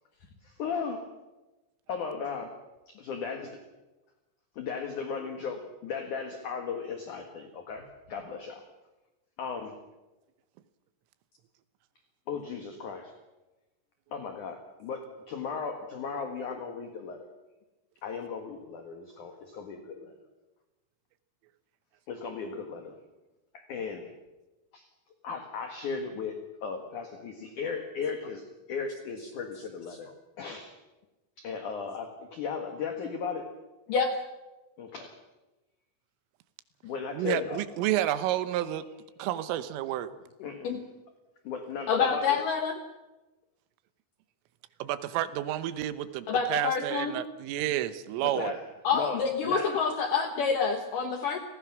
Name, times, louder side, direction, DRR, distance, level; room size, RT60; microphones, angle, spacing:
voice 1, 0.4-1.1 1.9-2.6 2.9-3.6 4.6-8.7 9.4-9.8 12.3-13.1 14.1-17.3 18.0-20.1 22.1-23.0 23.5-24.1 24.7-24.9 25.2-30.1 30.4-30.8 31.4-33.5 34.8-35.2 36.8-37.6 40.4-40.8 41.4-42.4 48.2-48.7 48.9-49.8, left 5 dB, 60° left, 5 dB, 2.2 m, -36 dB
voice 2, 37.1-38.8 39.2-40.1 44.8-48.6, right 13 dB, 85° right, 12 dB, 3.6 m, -30 dB
voice 3, 41.9-42.7 46.3-47.2 48.8-51.4, left 5 dB, 85° left, 6 dB, 1.8 m, -27 dB
30.0 x 18.5 x 6.1 m, 1.1 s
omnidirectional pair, 5.7 m